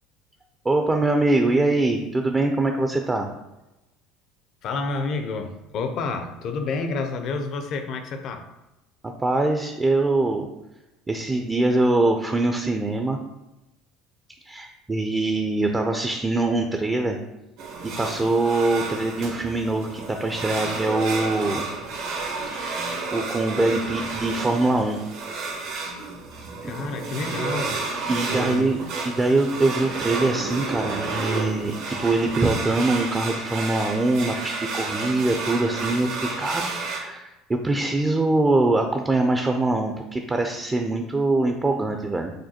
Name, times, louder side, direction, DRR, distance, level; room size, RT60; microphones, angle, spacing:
voice 1, 0.6-3.3 9.0-10.5 11.1-13.2 14.5-17.2 17.8-21.6 23.1-25.0 28.1-42.3, right 2 dB, 20° right, 4 dB, 0.4 m, -23 dB
voice 2, 4.6-8.4 26.6-27.8 28.3-28.8, left 3 dB, 55° left, 6 dB, 0.5 m, -29 dB
sound 1, 17.6-37.0, right 3 dB, 75° right, 1.0 m, -31 dB
6.3 x 2.2 x 2.8 m, 0.98 s
supercardioid pair, 95°, 0 cm